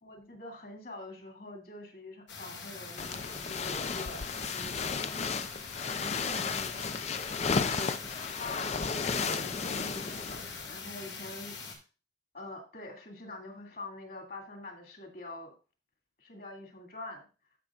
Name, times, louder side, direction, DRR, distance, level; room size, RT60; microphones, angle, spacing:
voice 1, 0.0-5.3 5.8-6.7 7.5-8.0 8.4-11.5 12.3-15.5 16.2-17.3, left 2 dB, 55° left, 1 dB, 2.3 m, -45 dB
sound 1, 2.3-11.7, left 4 dB, 85° left, 2.1 m, -43 dB
sound 2, 3.0-10.8, left 5 dB, 40° left, 0.5 m, -34 dB
14.5 x 5.5 x 2.4 m, 0.32 s
head